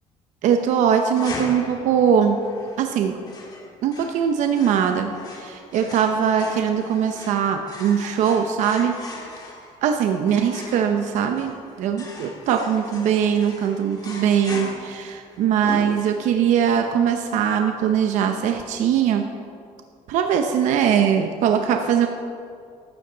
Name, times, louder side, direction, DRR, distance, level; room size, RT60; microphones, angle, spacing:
voice 1, 0.4-2.4 2.8-3.1 3.8-5.1 5.4-8.9 9.8-11.5 11.8-19.3 20.1-22.1, right 8 dB, 70° right, 5 dB, 0.8 m, -21 dB
sound 1, 1.2-16.5, left 3 dB, 30° left, 2.2 m, -39 dB
14.5 x 12.5 x 3.9 m, 2.3 s
cardioid pair, 130°, 13 cm